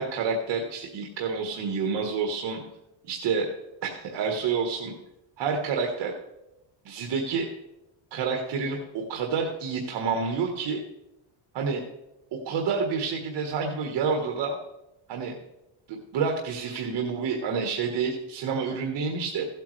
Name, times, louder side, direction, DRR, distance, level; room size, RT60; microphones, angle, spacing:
voice 1, 0.0-2.6 3.0-3.5 3.8-4.9 5.4-6.1 6.8-7.5 8.1-10.8 11.5-11.8 12.3-14.6 15.1-15.4 15.9-19.5, right 5 dB, 60° right, 1 dB, 1.4 m, -28 dB
15.5 x 8.4 x 3.2 m, 0.90 s
cardioid pair, 130°, 48 cm